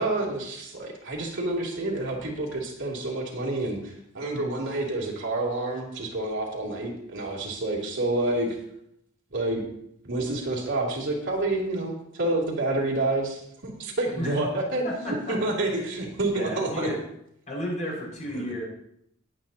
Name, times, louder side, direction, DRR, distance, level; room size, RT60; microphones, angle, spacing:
voice 1, 0.0-8.6 9.3-9.7 10.0-16.9 18.3-18.4, right 2 dB, 65° right, -2 dB, 2.9 m, -28 dB
voice 2, 14.8-15.8 16.3-17.0 17.5-18.7, equal, 35° left, -4 dB, 5.6 m, -33 dB
19.5 x 8.9 x 2.9 m, 0.74 s
head